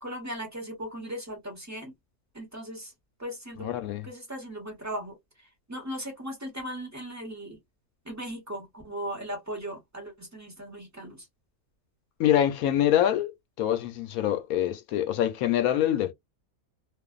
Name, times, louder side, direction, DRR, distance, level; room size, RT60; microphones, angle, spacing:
voice 1, 0.0-1.9 2.3-2.9 3.2-3.7 4.0-5.2 5.7-7.6 8.0-11.3, equal, 10° right, 1.0 m, -37 dB
voice 2, 3.6-4.1 12.2-13.3 13.6-16.1, left 11 dB, 75° left, 1.0 m, -25 dB
2.5 x 2.5 x 2.3 m
omnidirectional pair, 1.6 m